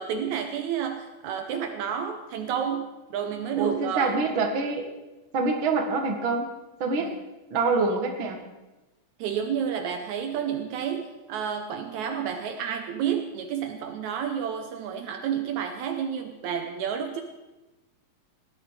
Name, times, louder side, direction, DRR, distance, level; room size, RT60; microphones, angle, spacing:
voice 1, 0.0-4.2 7.0-7.2 9.2-17.2, right 8 dB, 75° right, 6 dB, 2.2 m, -30 dB
voice 2, 3.6-4.9 5.3-6.5 6.8-7.1 7.5-8.4, right 3 dB, 45° right, 3 dB, 2.3 m, -25 dB
18.0 x 11.5 x 4.8 m, 1.1 s
omnidirectional pair, 3.4 m